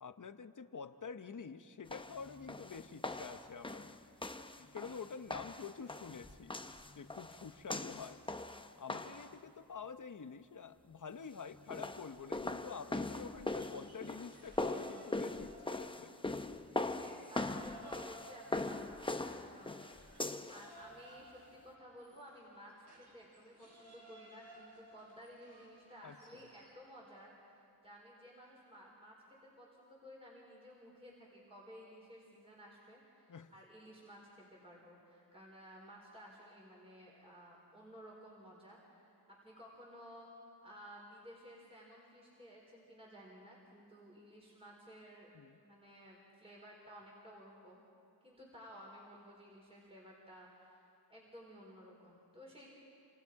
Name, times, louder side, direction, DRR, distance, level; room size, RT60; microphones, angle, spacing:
voice 1, 0.0-3.9 4.6-6.6 7.0-8.2 8.8-16.1 26.0-26.5 33.3-33.5 45.3-45.6, left 6 dB, 45° left, 10 dB, 0.9 m, -48 dB
sound 1, 1.9-9.3 11.5-20.7, left 2 dB, 10° left, 0.7 m, -41 dB
sound 2, 13.5-16.2 16.5-26.8, right 1 dB, 65° right, 7.6 m, -59 dB
voice 2, 16.9-40.3 40.6-45.3 45.6-47.8 48.2-52.7, equal, 15° right, -4 dB, 4.4 m, -55 dB
29.0 x 26.5 x 4.8 m, 2.5 s
wide cardioid pair, 105°, 43 cm